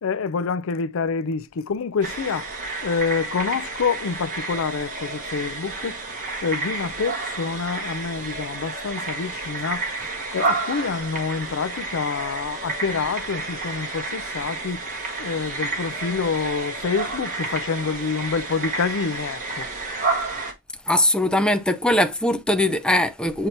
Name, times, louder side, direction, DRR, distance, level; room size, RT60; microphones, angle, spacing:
voice 1, 0.0-2.5 2.8-6.0 6.4-9.9 10.3-14.8 15.2-19.7, left 5 dB, 65° left, 0.5 m, -27 dB
sound 1, 2.0-20.5, right 3 dB, 40° right, 1.6 m, -30 dB
voice 2, 20.9-23.5, left 1 dB, 5° left, 0.6 m, -21 dB
8.0 x 2.8 x 4.3 m
head